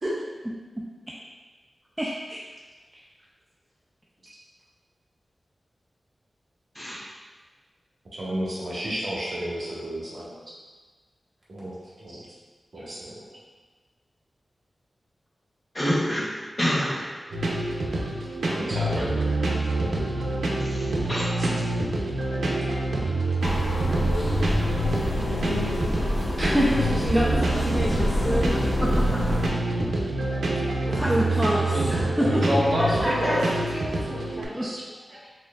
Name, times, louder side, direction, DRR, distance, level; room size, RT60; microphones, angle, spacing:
voice 1, 2.0-2.4 2.9-3.0 26.4-29.2 31.0-32.6 34.6-34.7, equal, 5° right, -5 dB, 0.4 m, -27 dB
voice 2, 8.1-10.3 11.5-12.2 12.7-13.1 18.4-19.3 32.2-33.4 34.6-34.8 35.1-35.3, equal, 60° right, -6 dB, 1.1 m, -29 dB
voice 3, 11.8-12.2 30.8-32.4 32.8-34.6, equal, 30° right, -9 dB, 1.4 m, -33 dB
voice 4, 15.7-16.2 16.6-17.3 20.6-21.3, equal, 20° left, -5 dB, 0.8 m, -27 dB
sound 1, 17.3-34.4, right 2 dB, 90° right, 0.5 m, -26 dB
sound 2, 23.4-29.5, left 1 dB, 70° left, 0.6 m, -27 dB
4.3 x 3.5 x 2.3 m, 1.3 s
wide cardioid pair, 115°, 0 cm